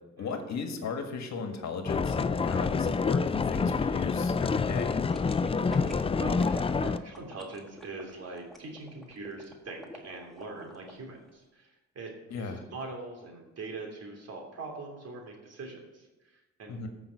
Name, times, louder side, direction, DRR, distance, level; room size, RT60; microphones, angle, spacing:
voice 1, 0.2-5.0 12.3-12.6 16.7-16.9, left 5 dB, 65° left, 5 dB, 1.8 m, -36 dB
sound 1, 1.9-7.0, left 4 dB, 20° left, 0.4 m, -27 dB
sound 2, 5.1-10.9 11.3-11.4, left 1 dB, ahead, 2.0 m, -46 dB
voice 2, 5.9-16.8, right 3 dB, 55° right, 0 dB, 3.2 m, -42 dB
14.5 x 6.0 x 5.9 m, 1.1 s
cardioid pair, 90°, 30 cm